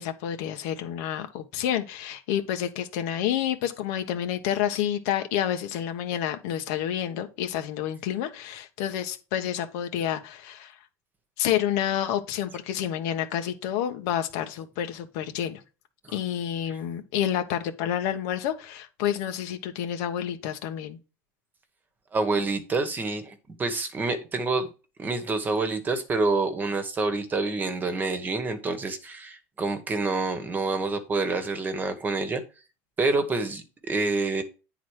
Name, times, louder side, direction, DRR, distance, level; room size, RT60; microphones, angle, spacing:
voice 1, 0.0-10.7 11.4-15.6 16.1-21.0, left 10 dB, 75° left, 1.3 m, -29 dB
voice 2, 22.1-24.7 25.0-32.4 33.0-34.4, right 3 dB, 20° right, 1.2 m, -27 dB
9.5 x 4.0 x 4.8 m
cardioid pair, 140°, 8 cm